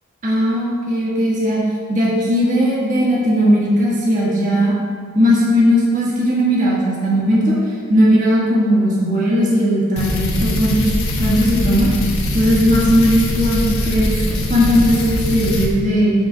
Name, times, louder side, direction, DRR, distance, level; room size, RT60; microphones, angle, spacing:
voice 1, 0.2-1.6 1.9-4.7 5.1-7.5 7.9-10.9 11.2-11.9 12.3-14.2 14.5-16.1, equal, 35° right, -6 dB, 1.4 m, -17 dB
sound 1, 10.0-15.7, left 1 dB, 75° left, 1.1 m, -21 dB
8.0 x 4.0 x 4.9 m, 2.1 s
head